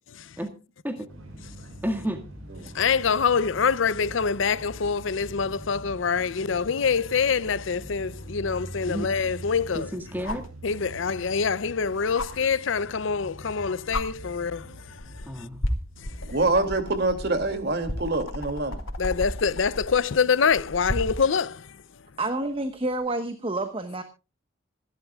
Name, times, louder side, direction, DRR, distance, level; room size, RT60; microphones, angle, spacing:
sound 1, 1.1-20.8, equal, 85° right, 5.6 m, -44 dB
voice 1, 1.8-2.2 8.9-9.1 9.7-10.5 15.3-15.6, equal, 10° right, 1.8 m, -31 dB
voice 2, 2.7-9.9 10.6-14.7 19.0-21.6, left 5 dB, 70° left, 0.6 m, -25 dB
sound 2, 8.0-8.1 10.2-10.5 12.1-12.3 13.4-13.5 13.9-14.1 15.0-15.2 15.6-21.3 22.9-23.0, left 1 dB, 90° left, 2.3 m, -33 dB
voice 3, 16.2-18.8, right 2 dB, 55° right, 2.5 m, -25 dB
voice 4, 22.2-24.0, right 2 dB, 25° right, 1.1 m, -29 dB
26.5 x 11.5 x 2.3 m
head